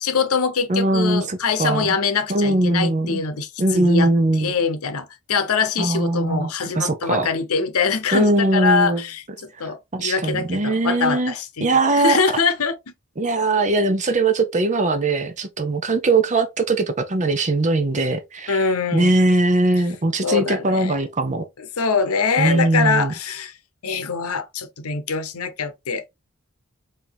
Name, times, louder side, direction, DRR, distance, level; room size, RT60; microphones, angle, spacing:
voice 1, 0.0-4.1 4.4-12.7 18.5-19.1 20.2-21.0 21.6-23.5 23.8-26.1, left 5 dB, 75° left, 0.8 m, -23 dB
voice 2, 0.7-1.9 2.3-3.2 3.6-4.5 5.8-7.3 8.1-9.0 9.6-11.3 11.6-12.2 13.2-21.4 22.4-23.1, right 2 dB, 35° right, 0.7 m, -20 dB
5.0 x 2.8 x 3.4 m
head